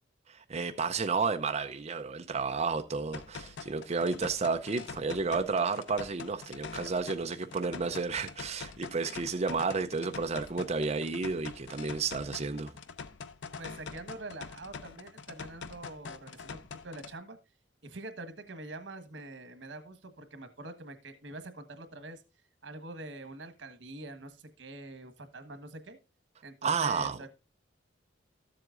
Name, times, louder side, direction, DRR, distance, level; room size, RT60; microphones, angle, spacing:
voice 1, 0.3-12.7 26.6-27.2, right 4 dB, 35° right, 0.5 m, -31 dB
sound 1, 3.1-17.1, left 5 dB, 85° left, 0.7 m, -45 dB
voice 2, 13.6-16.6 16.8-17.4 17.8-22.2 22.6-26.0 26.4-27.3, right 2 dB, 90° right, 1.4 m, -45 dB
13.0 x 7.7 x 2.5 m
head